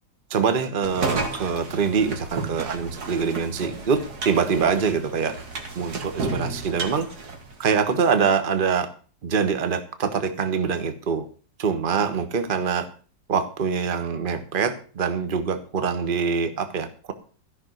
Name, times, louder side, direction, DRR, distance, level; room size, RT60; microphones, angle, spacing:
voice 1, 0.3-5.3 5.7-7.1 7.6-8.9 9.2-11.3 11.6-12.9 13.3-17.1, right 5 dB, 30° right, 9 dB, 1.3 m, -24 dB
sound 1, 0.8-8.0, right 3 dB, 55° right, 2.3 m, -32 dB
14.0 x 6.3 x 7.8 m, 0.39 s
omnidirectional pair, 2.0 m